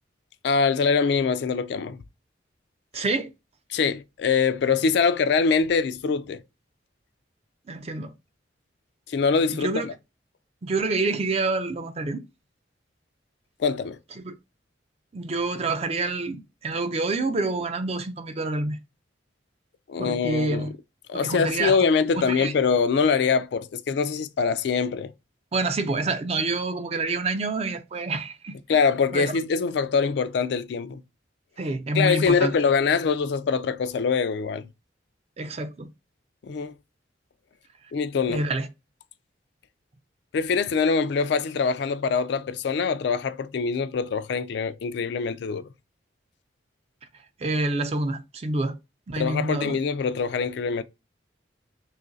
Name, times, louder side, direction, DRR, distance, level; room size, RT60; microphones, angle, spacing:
voice 1, 0.4-2.0 2.9-3.0 3.7-6.4 9.1-9.9 13.6-14.0 19.9-20.7 21.1-25.1 28.7-31.0 31.9-34.7 36.4-36.7 37.9-38.4 40.3-45.7 49.2-50.8, left 5 dB, 60° left, 0.3 m, -24 dB
voice 2, 2.9-3.3 7.7-8.1 9.5-9.9 10.6-12.2 14.2-14.3 15.1-18.8 20.0-20.7 21.1-21.9 22.1-22.5 25.5-28.5 29.1-29.4 31.6-32.5 35.4-35.9 38.3-38.7 47.4-48.8 49.1-49.8, right 3 dB, 35° right, 0.4 m, -27 dB
3.1 x 2.5 x 3.8 m
head